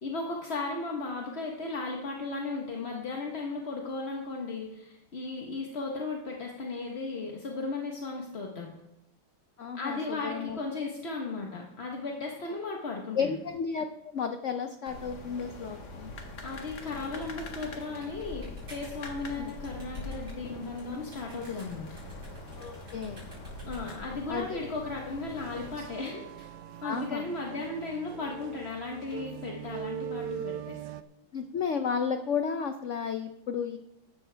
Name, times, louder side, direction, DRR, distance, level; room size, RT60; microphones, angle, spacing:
voice 1, 0.0-8.7 9.8-13.4 16.4-21.9 23.6-26.5 26.8-30.8, left 3 dB, 40° left, 0 dB, 1.2 m, -36 dB
voice 2, 9.6-10.6 13.2-16.1 19.4-19.5 22.6-23.2 24.3-24.7 26.8-27.3 31.3-33.8, left 6 dB, 85° left, 7 dB, 0.6 m, -33 dB
sound 1, 14.9-25.8, left 2 dB, 55° left, 2.1 m, -43 dB
sound 2, 16.5-24.3, right 2 dB, 85° right, 5.5 m, -54 dB
sound 3, 25.4-31.0, right 9 dB, 70° right, 1.0 m, -41 dB
14.0 x 11.5 x 3.4 m, 0.87 s
omnidirectional pair, 2.1 m